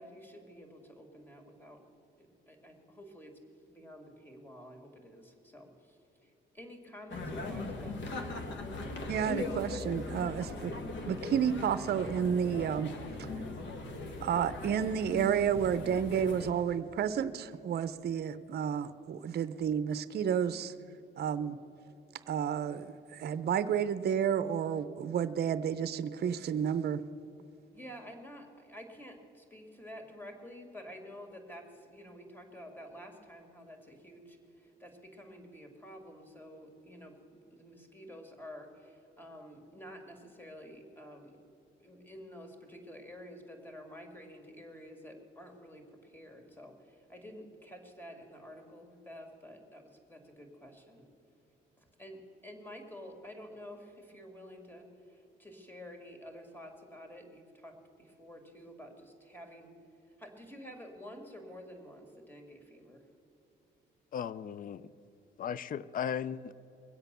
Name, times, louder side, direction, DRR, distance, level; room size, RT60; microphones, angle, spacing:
voice 1, 0.0-1.8 2.2-3.4 3.7-8.5 27.7-37.2 37.5-41.4 41.8-51.1 51.8-59.8 60.2-63.1, equal, 10° left, 3 dB, 2.3 m, -50 dB
sound 1, 7.1-16.5, left 2 dB, 65° left, 1.5 m, -39 dB
voice 2, 9.1-10.7 11.1-12.9 13.2-13.3 14.2-20.7 21.2-21.6 22.3-27.0, right 8 dB, 55° right, 13 dB, 0.6 m, -31 dB
voice 3, 64.1-64.9 65.4-66.5, left 8 dB, 45° left, 19 dB, 0.5 m, -36 dB
21.5 x 8.1 x 6.8 m, 2.8 s
cardioid pair, 90°, 20 cm